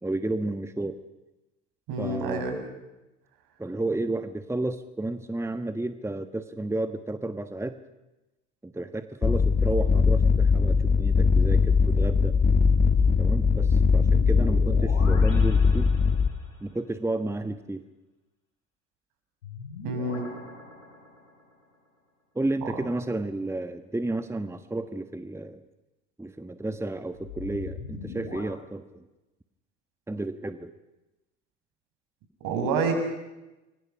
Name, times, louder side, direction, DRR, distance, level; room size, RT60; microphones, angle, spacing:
voice 1, 0.0-1.0 2.0-2.5 3.6-7.8 8.6-12.4 13.2-15.9 16.6-17.8 22.3-25.6 26.2-29.0 30.1-30.7, right 2 dB, 5° right, 10 dB, 1.3 m, -32 dB
voice 2, 1.9-2.6 19.8-20.3 22.6-22.9 32.4-32.9, right 4 dB, 60° right, 5 dB, 7.1 m, -28 dB
sound 1, 9.2-16.3, left 5 dB, 25° left, 1.7 m, -21 dB
sound 2, 12.2-16.6 19.4-21.5 27.1-28.4, left 4 dB, 85° left, 6.4 m, -40 dB
29.5 x 23.5 x 6.0 m, 1.0 s
hypercardioid pair, 70°, 38 cm